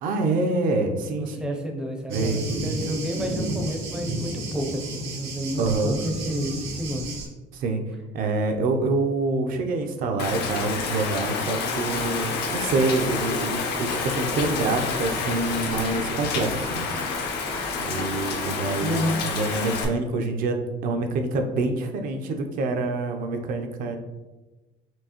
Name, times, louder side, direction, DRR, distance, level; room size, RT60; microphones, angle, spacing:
voice 1, 0.0-1.6 2.1-2.5 5.6-6.0 7.5-7.8 8.1-16.9 17.8-24.0, right 3 dB, 60° right, 5 dB, 0.5 m, -26 dB
voice 2, 1.2-7.1 18.8-19.2, equal, 5° right, 1 dB, 0.5 m, -30 dB
Thunder, 2.1-7.3, right 2 dB, 85° right, 1.3 m, -31 dB
Rain, 10.2-19.8, left 4 dB, 75° left, 0.7 m, -29 dB
4.4 x 2.7 x 2.9 m, 1.1 s
cardioid pair, 150°, 16 cm